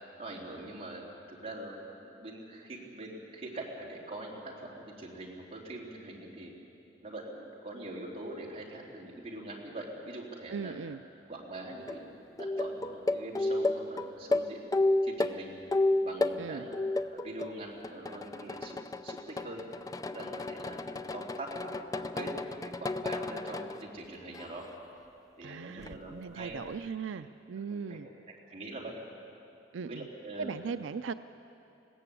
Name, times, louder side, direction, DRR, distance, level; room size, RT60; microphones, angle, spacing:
voice 1, 0.2-1.7 2.0-6.5 7.0-10.7 11.3-14.7 15.0-15.5 16.0-16.8 17.1-19.6 20.1-24.7 25.4-26.6 27.7-28.1 28.5-28.9 29.8-30.5, right 2 dB, 30° right, -4 dB, 3.4 m, -43 dB
voice 2, 10.5-11.0 16.4-16.7 25.4-28.1 29.7-30.1 30.4-31.1, right 5 dB, 90° right, 11 dB, 0.4 m, -38 dB
sound 1, 11.8-12.0 12.4-16.4 16.7-17.5 17.8-23.8 24.3-24.7 25.8-25.9, left 2 dB, 20° left, 0.5 m, -32 dB
20.5 x 16.5 x 8.5 m, 2.8 s
head